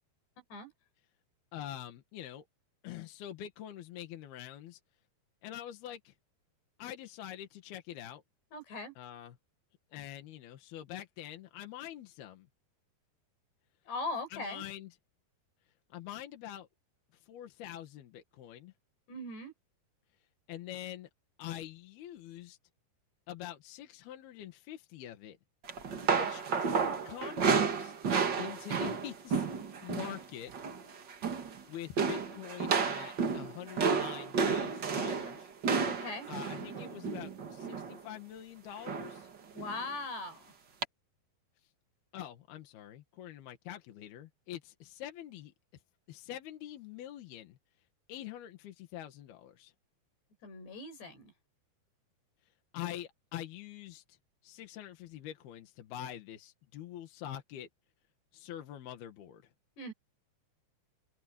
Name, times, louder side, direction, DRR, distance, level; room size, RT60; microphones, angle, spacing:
voice 1, 1.5-2.5 2.8-4.8 5.4-6.1 6.8-8.2 9.0-9.4 9.9-12.5 14.3-14.9 15.9-16.7 17.1-18.7 20.5-21.1 21.4-22.6 23.3-25.4 26.1-28.0 28.4-29.5 29.8-30.5 31.7-35.5 36.3-39.3 42.1-45.5 46.1-47.6 48.1-49.7 52.7-54.2 54.4-57.7 58.3-59.4, left 11 dB, 70° left, 3.5 m, -45 dB
voice 2, 8.5-8.9 13.9-14.6 19.1-19.5 35.9-36.3 39.5-40.5 50.4-51.3 59.8-59.9, left 2 dB, 90° left, 7.5 m, -40 dB
sound 1, 25.7-30.2 30.5-30.8 31.1-31.6 32.0-38.0 38.8-39.2 39.6-39.7 40.8-40.9, right 5 dB, 55° right, 1.2 m, -32 dB
omnidirectional pair, 4.7 m